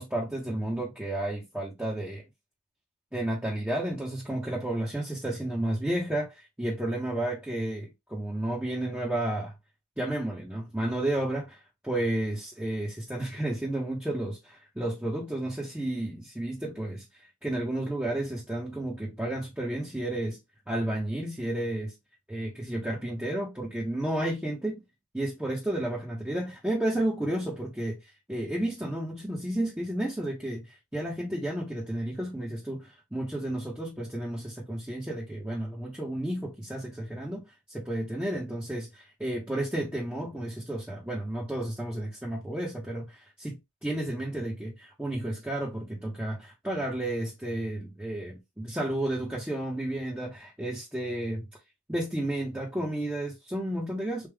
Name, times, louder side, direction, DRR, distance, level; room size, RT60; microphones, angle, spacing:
voice 1, 0.0-2.2 3.1-9.5 10.0-20.4 20.7-21.9 22.3-24.8 25.1-28.0 28.3-37.4 37.7-51.5 51.9-54.3, right 1 dB, 5° right, 1.2 m, -32 dB
3.5 x 2.6 x 3.5 m
wide cardioid pair, 80°, 43 cm